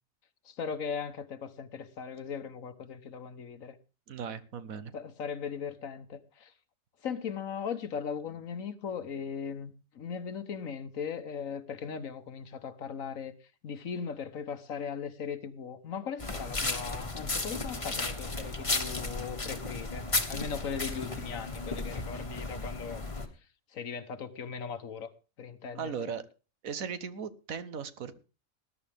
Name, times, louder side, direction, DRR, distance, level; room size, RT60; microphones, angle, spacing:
voice 1, 0.5-3.8 4.9-6.5 7.0-13.3 13.6-23.0 23.7-25.1 25.4-25.9, left 6 dB, 75° left, 1.5 m, -38 dB
voice 2, 4.1-4.9 25.7-26.3 26.6-28.2, right 6 dB, 80° right, 1.5 m, -37 dB
sound 1, 16.2-23.3, left 3 dB, 25° left, 1.3 m, -34 dB
19.5 x 11.0 x 3.5 m
omnidirectional pair, 1.4 m